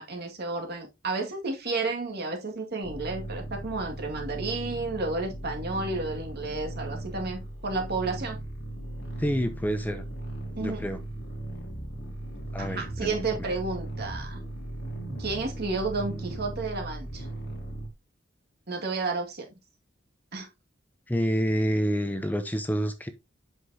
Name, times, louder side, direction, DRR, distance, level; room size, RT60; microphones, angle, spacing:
voice 1, 0.0-8.4 10.6-10.8 12.6-14.4 15.2-17.3 18.7-19.5 20.3-20.5, right 3 dB, 55° right, 2.1 m, -32 dB
sound 1, 2.8-17.9, right 1 dB, 60° left, 2.7 m, -37 dB
voice 2, 9.2-10.0 10.6-11.0 12.5-13.5 21.1-23.1, equal, 10° left, 0.7 m, -28 dB
8.1 x 5.8 x 2.8 m
head